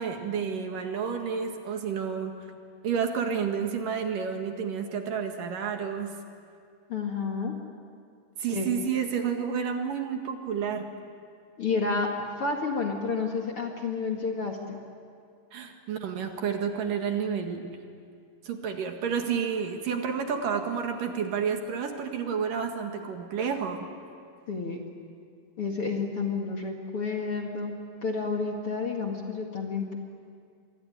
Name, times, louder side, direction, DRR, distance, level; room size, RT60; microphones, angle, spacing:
voice 1, 0.0-2.4 2.8-6.1 8.4-10.9 15.5-17.8 18.4-23.9, right 6 dB, 65° right, 4 dB, 3.2 m, -30 dB
voice 2, 6.9-7.5 8.5-8.7 11.6-12.1 12.4-14.8 24.5-24.8 25.6-27.7 28.0-30.0, left 4 dB, 45° left, 1 dB, 2.3 m, -30 dB
26.5 x 22.5 x 9.8 m, 2.3 s
omnidirectional pair, 4.4 m